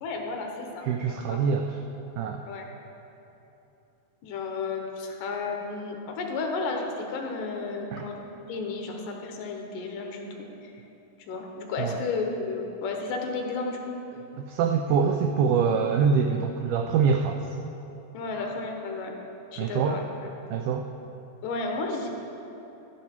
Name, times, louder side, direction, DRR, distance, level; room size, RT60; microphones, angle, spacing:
voice 1, 0.0-1.4 2.4-2.7 4.2-10.7 11.3-13.9 18.1-19.1 19.5-20.0 21.4-22.1, left 3 dB, 70° left, 2 dB, 2.5 m, -33 dB
voice 2, 0.8-1.8 2.2-2.4 7.9-8.1 11.8-12.0 14.4-17.5 19.6-20.0 20.5-20.9, right 6 dB, 85° right, 4 dB, 1.7 m, -25 dB
12.5 x 9.5 x 4.5 m, 3.0 s
omnidirectional pair, 4.1 m